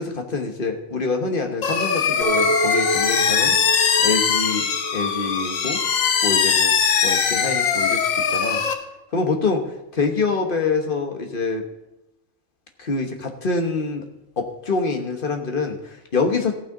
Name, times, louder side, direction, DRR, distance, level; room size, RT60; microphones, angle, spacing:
voice 1, 0.0-3.6 4.0-5.8 6.2-8.6 9.1-9.6 9.9-11.6 12.8-14.1 14.4-16.5, left 4 dB, 40° left, 4 dB, 1.3 m, -25 dB
sound 1, 1.6-8.7, left 7 dB, 75° left, 1.3 m, -21 dB
Chink clink, 2.2-7.4, right 3 dB, 90° right, 2.1 m, -29 dB
15.0 x 8.9 x 3.9 m, 0.92 s
omnidirectional pair, 1.5 m